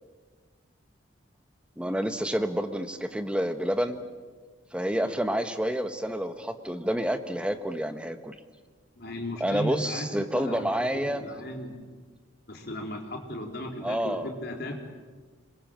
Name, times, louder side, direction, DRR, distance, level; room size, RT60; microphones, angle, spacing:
voice 1, 1.8-4.0 4.7-8.3 9.4-11.2 13.8-14.3, equal, 5° right, 8 dB, 1.2 m, -29 dB
voice 2, 9.0-11.8 12.5-14.8, left 1 dB, 55° left, 1 dB, 3.9 m, -36 dB
26.0 x 22.0 x 7.6 m, 1.4 s
head